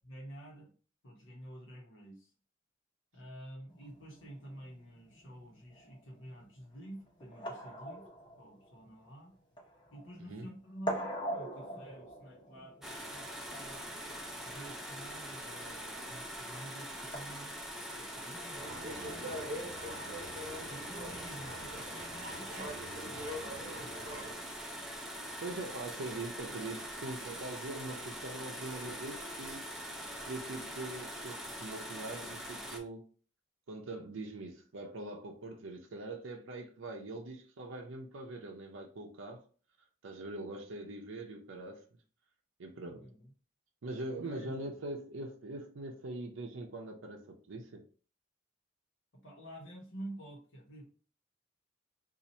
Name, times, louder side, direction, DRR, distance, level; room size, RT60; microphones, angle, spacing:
voice 1, 0.0-0.7 1.0-2.3 3.1-8.1 8.4-9.3 9.9-13.9 14.4-17.6 17.9-20.1 20.7-24.0 43.0-43.3 44.2-44.7 49.2-50.9, right 1 dB, 90° left, 1.1 m, -50 dB
sound 1, 3.7-17.2, right 1 dB, 25° left, 0.8 m, -44 dB
sound 2, 12.8-32.8, equal, ahead, 0.4 m, -43 dB
sound 3, 18.6-24.3, equal, 45° right, 0.9 m, -43 dB
voice 2, 25.4-29.6 30.3-33.1 33.7-39.4 40.0-41.8 42.6-43.1 43.8-47.8, right 2 dB, 90° right, 0.5 m, -42 dB
2.7 x 2.4 x 4.2 m
head